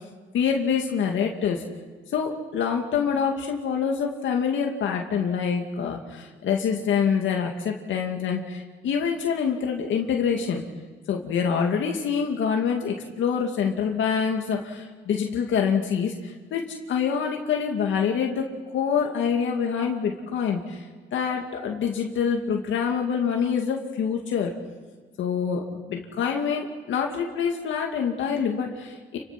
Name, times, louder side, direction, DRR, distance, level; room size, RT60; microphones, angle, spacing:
voice 1, 0.3-1.6 2.1-10.6 11.1-20.8 21.1-24.5 25.2-29.2, left 6 dB, 75° left, 2 dB, 2.3 m, -26 dB
28.5 x 23.5 x 6.0 m, 1.5 s
cardioid pair, 90°, 20 cm